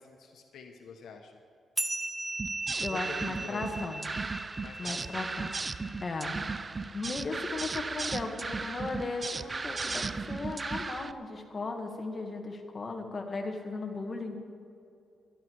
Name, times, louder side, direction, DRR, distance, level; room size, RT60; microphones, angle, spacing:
voice 1, 0.0-1.3 2.9-3.8 4.6-5.5, left 5 dB, 80° left, 4 dB, 1.2 m, -46 dB
sound 1, 1.8-6.6, right 2 dB, 10° right, 1.0 m, -38 dB
sound 2, 2.4-11.1, right 3 dB, 30° right, 0.5 m, -36 dB
voice 2, 2.8-4.0 4.8-5.5 6.0-6.4 6.9-14.4, left 3 dB, 35° left, 3 dB, 2.0 m, -36 dB
23.5 x 11.5 x 4.8 m, 2.6 s
cardioid pair, 105°, 0 cm